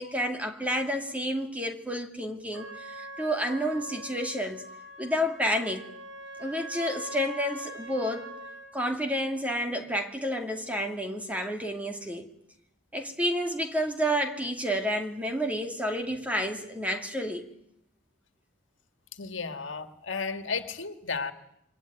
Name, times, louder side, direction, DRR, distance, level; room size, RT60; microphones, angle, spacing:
voice 1, 0.0-4.6 5.0-5.9 6.4-8.3 8.7-12.3 12.9-17.5, equal, 5° right, 2.4 m, -30 dB
Trumpet, 2.5-8.7, right 1 dB, 75° right, 7.5 m, -43 dB
voice 2, 19.1-21.3, left 4 dB, 75° left, 2.2 m, -33 dB
27.0 x 23.5 x 9.3 m
head